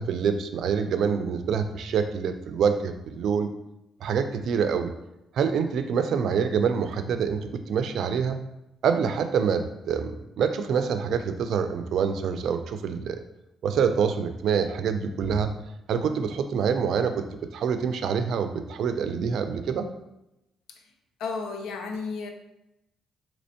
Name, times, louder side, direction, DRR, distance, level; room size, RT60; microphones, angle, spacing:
voice 1, 0.0-3.5 4.0-4.9 5.3-8.4 8.8-13.2 13.6-15.5 15.9-17.2 17.5-19.9, right 6 dB, 70° right, 8 dB, 0.4 m, -26 dB
voice 2, 21.2-22.3, left 4 dB, 85° left, 5 dB, 0.5 m, -33 dB
4.3 x 2.9 x 2.8 m, 0.88 s
cardioid pair, 90°, 0 cm